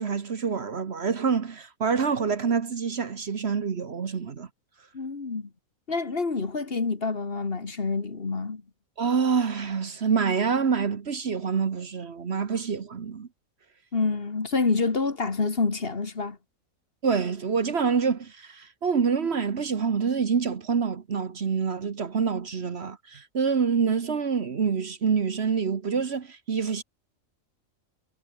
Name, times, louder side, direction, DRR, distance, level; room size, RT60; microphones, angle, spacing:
voice 1, 0.0-4.5 9.0-13.3 17.0-26.8, right 6 dB, 50° right, 1.4 m, -26 dB
voice 2, 4.9-5.5 5.9-8.6 13.9-16.4, left 4 dB, 45° left, 2.0 m, -27 dB
omnidirectional pair, 1.4 m